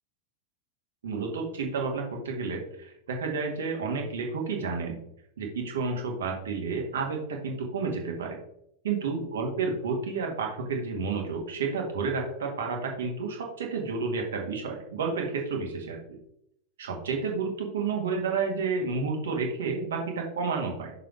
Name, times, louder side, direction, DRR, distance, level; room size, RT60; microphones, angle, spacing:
voice 1, 1.0-5.0 5.4-8.4 8.8-16.2 16.8-20.9, right 4 dB, 65° right, 1 dB, 1.8 m, -31 dB
6.5 x 4.2 x 5.3 m, 0.75 s
figure-of-eight pair, 90°, 0 cm